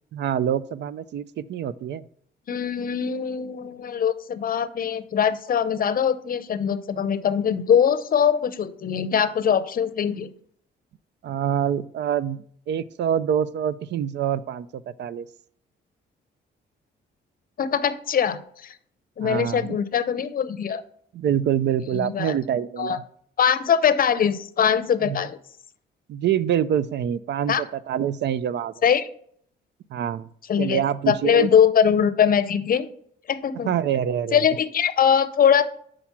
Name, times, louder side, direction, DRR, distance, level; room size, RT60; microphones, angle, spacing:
voice 1, 0.1-2.0 11.2-15.3 19.2-19.8 21.1-23.0 25.0-25.2 26.1-28.7 29.9-30.3 30.6-31.5 33.6-34.4, right 9 dB, 60° right, 17 dB, 0.4 m, -26 dB
voice 2, 2.5-10.3 17.6-18.7 19.2-20.8 21.9-22.3 22.8-23.0 23.4-25.4 27.5-27.6 28.8-29.1 30.5-32.9 33.3-33.7 34.3-35.6, left 8 dB, 45° left, 13 dB, 0.6 m, -22 dB
5.9 x 5.0 x 5.8 m, 0.63 s
cardioid pair, 90°, 20 cm